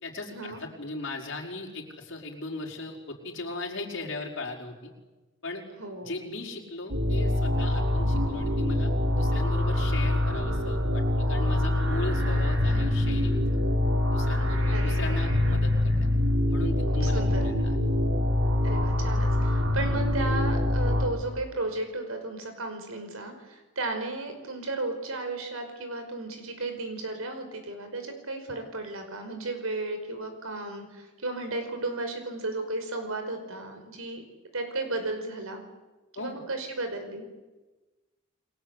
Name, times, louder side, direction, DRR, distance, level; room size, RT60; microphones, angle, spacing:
voice 1, 0.0-4.9 5.4-5.6 6.0-13.4 14.1-16.1 16.5-17.8 36.1-36.4, left 2 dB, 60° left, 1 dB, 5.1 m, -38 dB
voice 2, 5.8-6.1 14.7-15.2 17.0-17.4 18.6-34.2 34.5-35.6 36.1-37.2, right 2 dB, 85° right, 7 dB, 5.3 m, -34 dB
sound 1, 6.9-21.1, left 1 dB, 70° right, 4.9 m, -25 dB
29.5 x 21.5 x 8.4 m, 1.2 s
head